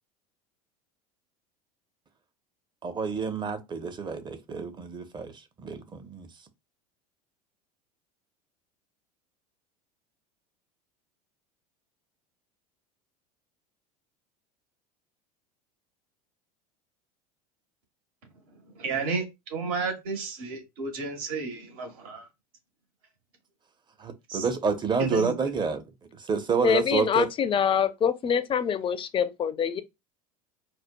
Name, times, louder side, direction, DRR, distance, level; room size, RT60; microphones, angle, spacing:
voice 1, 2.8-5.3 5.6-6.3 24.0-25.8 26.2-27.3, right 5 dB, 25° right, 0.7 m, -28 dB
voice 2, 18.7-22.3 24.3-24.5 25.0-25.5, right 4 dB, 70° right, 1.3 m, -32 dB
voice 3, 26.6-29.8, left 8 dB, 25° left, 0.5 m, -25 dB
4.2 x 2.2 x 2.2 m
hypercardioid pair, 80°, 20 cm